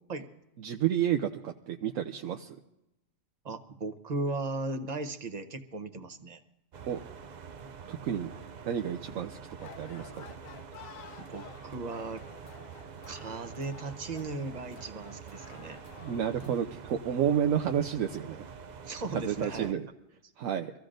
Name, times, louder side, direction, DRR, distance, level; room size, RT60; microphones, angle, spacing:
voice 1, 0.6-2.6 6.9-7.0 7.9-8.3 8.7-10.4 16.0-18.4 19.1-19.9 20.4-20.7, right 9 dB, 85° right, 4 dB, 1.1 m, -31 dB
voice 2, 3.4-6.4 11.2-12.2 13.1-15.8 18.8-19.8, right 3 dB, 35° right, 9 dB, 0.9 m, -37 dB
sound 1, 6.7-19.7, right 6 dB, 55° right, 0.5 m, -46 dB
sound 2, 9.6-16.6, left 8 dB, 80° left, 1.1 m, -52 dB
24.5 x 15.0 x 2.6 m, 0.87 s
omnidirectional pair, 1.4 m